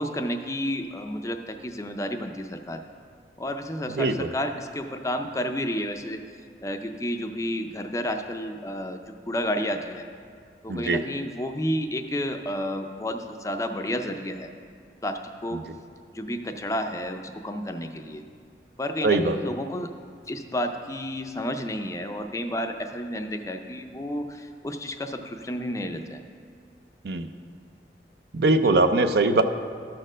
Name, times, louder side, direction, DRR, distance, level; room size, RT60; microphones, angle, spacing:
voice 1, 0.0-2.8 3.4-6.2 6.6-10.0 10.6-14.5 15.0-15.6 16.1-18.2 18.8-19.9 20.3-26.2 28.7-28.8, equal, 20° left, 6 dB, 0.4 m, -31 dB
voice 2, 4.0-4.3 10.7-11.0 15.5-15.6 19.0-19.4 27.0-27.3 28.3-29.4, right 2 dB, 65° right, 9 dB, 0.5 m, -21 dB
13.0 x 4.4 x 6.2 m, 2.2 s
head